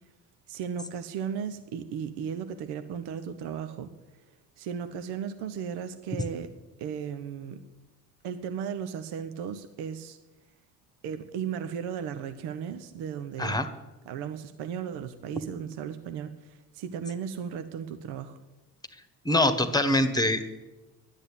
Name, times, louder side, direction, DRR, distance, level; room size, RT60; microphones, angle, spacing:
voice 1, 0.5-3.9 4.6-6.5 6.8-7.6 8.2-10.2 11.0-13.6 14.1-18.4, right 7 dB, 55° right, 9 dB, 1.0 m, -35 dB
voice 2, 19.2-20.7, left 1 dB, 10° left, 9 dB, 1.5 m, -24 dB
11.5 x 10.0 x 8.5 m, 1.1 s
figure-of-eight pair, 45°, 47 cm